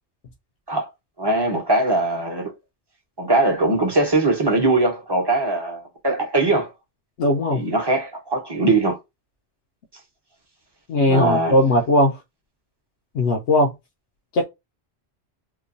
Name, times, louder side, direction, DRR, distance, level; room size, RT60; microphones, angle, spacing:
voice 1, 1.2-2.5 3.2-6.7 7.5-9.0 11.1-11.6, right 2 dB, 25° right, 0.8 m, -21 dB
voice 2, 7.2-7.6 10.9-12.2 13.1-13.7 14.3-14.4, left 1 dB, 80° left, 0.9 m, -18 dB
3.0 x 2.2 x 2.5 m
omnidirectional pair, 1.2 m